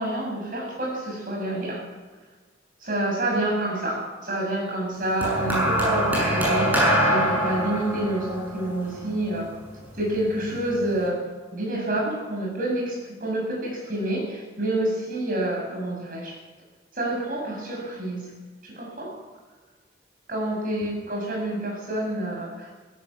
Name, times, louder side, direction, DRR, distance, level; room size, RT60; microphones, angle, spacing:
voice 1, 0.0-1.8 2.8-9.5 9.9-11.2 11.5-16.4 16.9-18.4 18.6-19.2 20.3-22.7, right 1 dB, 45° right, -1 dB, 8.0 m, -28 dB
sound 1, 5.2-9.6 10.6-10.8, equal, 10° right, 7.4 m, -23 dB
17.0 x 17.0 x 9.0 m, 1.4 s
head